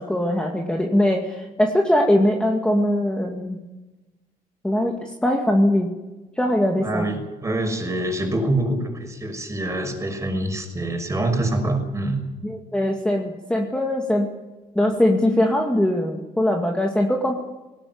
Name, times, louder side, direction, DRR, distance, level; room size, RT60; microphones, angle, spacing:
voice 1, 0.0-3.6 4.6-5.9 6.4-7.2 12.4-14.3 14.7-17.3, left 1 dB, 5° left, 1 dB, 2.2 m, -21 dB
voice 2, 6.8-12.2, right 1 dB, 15° right, 5 dB, 6.1 m, -25 dB
19.0 x 18.0 x 9.5 m, 1.1 s
cardioid pair, 110°, 17 cm